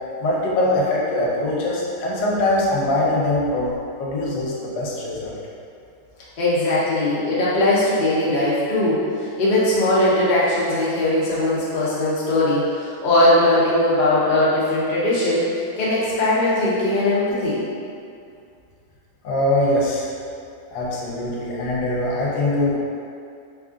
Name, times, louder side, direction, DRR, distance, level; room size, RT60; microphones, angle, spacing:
voice 1, 0.2-5.4 19.2-20.1 20.7-22.8, left 1 dB, 75° left, -4 dB, 1.3 m, -22 dB
voice 2, 6.4-17.6, left 1 dB, 60° left, -8 dB, 0.4 m, -20 dB
3.5 x 2.4 x 3.6 m, 2.5 s
omnidirectional pair, 2.0 m